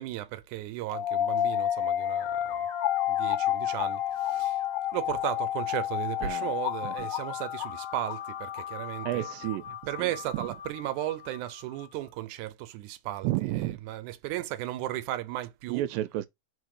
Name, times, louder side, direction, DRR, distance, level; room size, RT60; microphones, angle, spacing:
voice 1, 0.0-2.7 3.1-4.6 4.9-9.3 9.9-13.5 13.9-15.8, right 14 dB, 75° right, 2.1 m, -35 dB
sound 1, 0.9-11.9, left 11 dB, 80° left, 2.0 m, -31 dB
voice 2, 6.2-6.5 6.8-7.1 9.0-9.7 10.0-10.5 13.2-13.8 15.7-16.3, right 15 dB, 90° right, 2.3 m, -32 dB
4.4 x 4.3 x 4.9 m
omnidirectional pair, 3.9 m